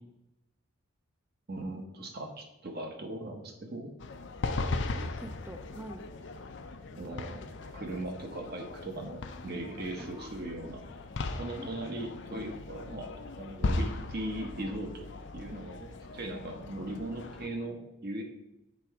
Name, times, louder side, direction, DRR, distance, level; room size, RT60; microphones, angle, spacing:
voice 1, 1.5-3.9 6.9-7.4 7.7-10.8 11.4-15.1 15.3-18.2, right 1 dB, 45° right, 3 dB, 0.9 m, -39 dB
sound 1, 4.0-17.5, left 3 dB, 55° left, 0.5 m, -38 dB
voice 2, 4.9-6.0 10.0-10.7 11.6-12.1, right 1 dB, 10° right, 5 dB, 0.3 m, -46 dB
7.5 x 3.4 x 4.6 m, 0.89 s
head